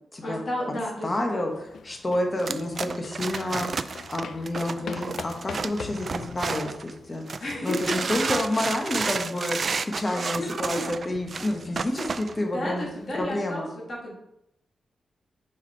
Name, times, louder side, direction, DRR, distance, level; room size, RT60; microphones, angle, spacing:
voice 1, 0.2-1.5 7.4-8.1 8.3-8.4 10.0-10.9 12.4-14.2, left 1 dB, 45° left, -4 dB, 2.5 m, -33 dB
voice 2, 1.0-3.7 4.1-7.3 7.6-9.6 9.9-12.9 13.1-13.7, left 1 dB, 20° left, 2 dB, 1.0 m, -29 dB
sound 1, 1.5-13.3, left 6 dB, 75° left, 0.4 m, -44 dB
sound 2, 2.4-6.9 7.3-12.3, right 5 dB, 40° right, 0.3 m, -31 dB
5.7 x 4.4 x 5.4 m, 0.81 s
wide cardioid pair, 155°, 0 cm